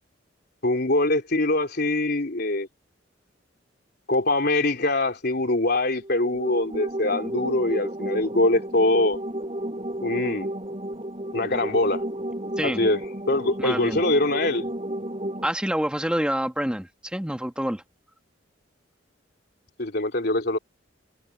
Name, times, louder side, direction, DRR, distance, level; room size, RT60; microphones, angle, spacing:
voice 1, 0.6-2.7 4.1-9.2 10.0-10.5 11.3-12.0 12.6-13.0 13.3-14.7 19.8-20.6, left 2 dB, 55° left, 3.6 m, -23 dB
sound 1, 6.0-15.5, right 1 dB, 30° right, 7.6 m, -32 dB
voice 2, 13.6-14.0 15.4-17.8, equal, 5° right, 2.1 m, -27 dB
head